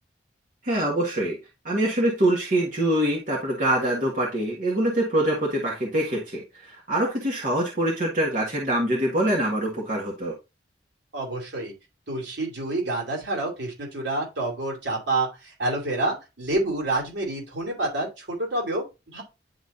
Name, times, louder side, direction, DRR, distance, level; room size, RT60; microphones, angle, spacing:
voice 1, 0.6-1.4 1.6-10.3, right 1 dB, 45° right, -3 dB, 1.6 m, -24 dB
voice 2, 11.1-11.7 12.1-19.2, right 2 dB, 80° right, 0 dB, 2.7 m, -28 dB
10.0 x 4.2 x 2.6 m, 0.25 s
head